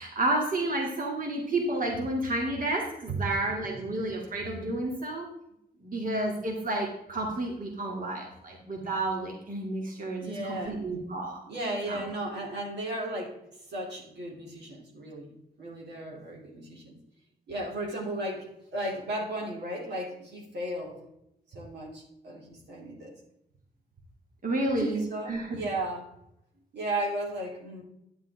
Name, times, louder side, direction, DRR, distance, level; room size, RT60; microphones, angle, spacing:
voice 1, 0.0-5.3 5.8-11.4 11.9-12.0 24.4-25.0 25.3-25.6, right 2 dB, 50° right, 0 dB, 2.4 m, -31 dB
voice 2, 10.1-10.8 11.5-13.3 13.7-15.3 15.6-17.0 17.5-21.0 21.5-23.2 24.7-26.1 26.7-27.8, right 1 dB, 80° right, -2 dB, 2.9 m, -35 dB
10.5 x 7.4 x 3.6 m, 0.80 s
cardioid pair, 70°, 17 cm